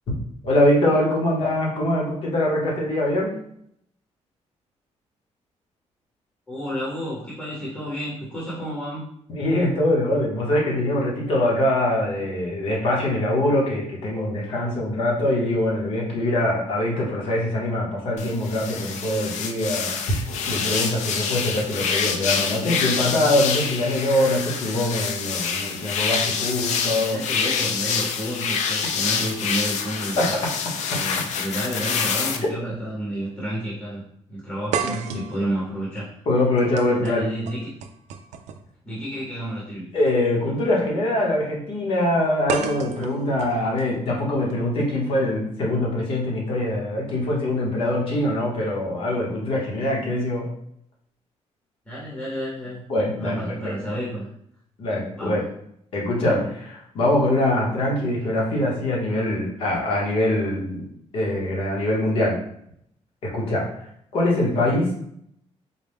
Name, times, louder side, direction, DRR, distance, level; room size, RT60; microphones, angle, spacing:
voice 1, 0.4-3.3 9.3-27.2 30.2-30.4 30.9-31.0 36.3-37.2 39.9-50.5 52.9-53.7 54.8-55.4 55.9-60.9 61.1-62.4 63.2-63.9 64.1-65.0, left 1 dB, 50° left, -3 dB, 1.1 m, -23 dB
voice 2, 6.5-9.0 27.0-30.3 30.9-34.0 34.3-36.1 36.9-37.7 38.8-39.9 51.9-52.8 53.1-54.3 55.1-55.4 64.6-64.8, right 1 dB, 10° left, -7 dB, 0.9 m, -31 dB
sound 1, 18.2-32.4, left 6 dB, 85° left, 0.4 m, -26 dB
sound 2, 32.7-32.9 33.3-33.4 34.7-38.7 39.9-40.1 42.5-44.5, right 6 dB, 75° right, 0.4 m, -32 dB
4.0 x 2.2 x 3.4 m, 0.70 s
cardioid pair, 180°, 12 cm